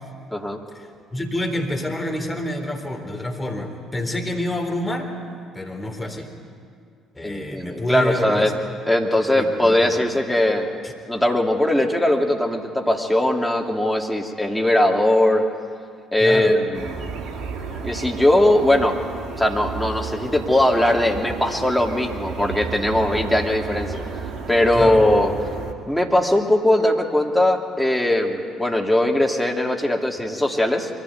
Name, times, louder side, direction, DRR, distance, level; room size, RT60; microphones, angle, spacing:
voice 1, 0.7-5.1 5.5-6.3 7.1-8.6 9.4-10.1 10.8-10.9 16.2-16.6 24.7-25.1, left 1 dB, 20° left, 3 dB, 3.7 m, -28 dB
voice 2, 7.2-8.5 8.9-10.8 11.1-15.4 16.1-17.0 17.8-19.0 19.4-23.9 24.5-25.3 25.9-30.9, left 1 dB, 5° left, 1 dB, 2.9 m, -20 dB
sound 1, 16.7-25.7, right 4 dB, 55° right, 2.2 m, -32 dB
23.0 x 15.5 x 9.5 m, 2.2 s
figure-of-eight pair, 50°, 0 cm